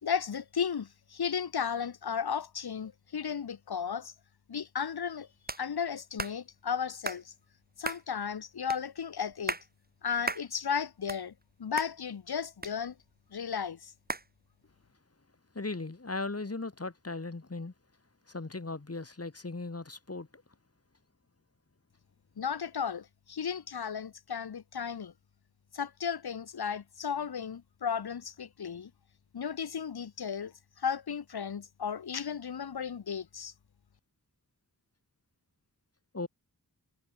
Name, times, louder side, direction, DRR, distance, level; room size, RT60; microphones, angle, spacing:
voice 1, 0.0-4.1 4.5-5.3 5.6-7.3 7.8-9.6 10.0-11.3 11.6-12.9 13.3-13.9 22.4-25.1 25.7-28.9 29.3-33.5, left 7 dB, 90° left, 1.5 m, -34 dB
sound 1, 5.5-5.6 6.2-6.4 7.0-7.2 7.8-8.0 8.7-8.8 9.3-9.7 10.3-10.5 10.9-11.5 11.8-11.9 12.6-13.2 14.1-14.3, right 3 dB, 25° right, 1.1 m, -36 dB
voice 2, 15.5-17.7 18.3-20.3 36.1-36.3, left 3 dB, 40° left, 6.4 m, -37 dB
wide cardioid pair, 80°, 37 cm